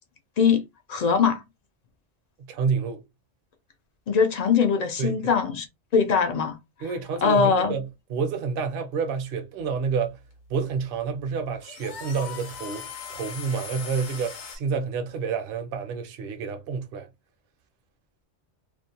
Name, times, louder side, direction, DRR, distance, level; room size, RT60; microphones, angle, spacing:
voice 1, 0.9-1.4 4.1-5.6 5.9-6.6 7.2-7.8, left 6 dB, 55° left, 0.4 m, -21 dB
voice 2, 2.4-3.0 5.0-5.3 6.8-10.2 10.5-17.1, right 5 dB, 60° right, 0.7 m, -29 dB
sound 1, 9.6-14.6, left 7 dB, 85° left, 0.9 m, -40 dB
2.5 x 2.1 x 2.7 m
omnidirectional pair, 1.1 m